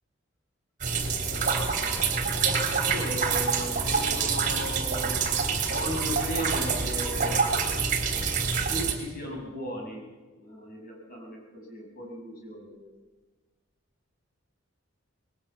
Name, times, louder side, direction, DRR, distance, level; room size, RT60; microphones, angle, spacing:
sound 1, 0.8-8.9, right 5 dB, 40° right, 3.1 m, -27 dB
voice 1, 2.8-5.3 5.6-7.7 8.7-10.1 10.3-12.9, equal, 45° left, 0 dB, 6.7 m, -37 dB
20.5 x 18.5 x 7.4 m, 1.3 s
head